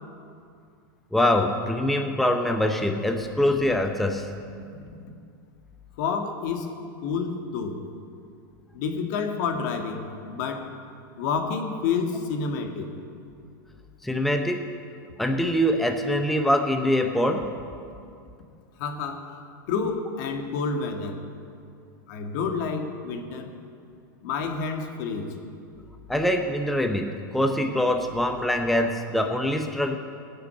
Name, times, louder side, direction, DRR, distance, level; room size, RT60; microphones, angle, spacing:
voice 1, 1.1-4.3 14.0-14.7 15.2-17.6 26.1-30.0, left 1 dB, ahead, 4 dB, 0.7 m, -24 dB
voice 2, 6.0-6.7 7.0-7.8 8.7-10.7 11.2-12.9 18.8-19.2 19.7-21.2 22.1-23.5 24.2-25.4, left 5 dB, 65° left, 5 dB, 1.8 m, -29 dB
17.5 x 6.7 x 8.6 m, 2.4 s
supercardioid pair, 125°, 11 cm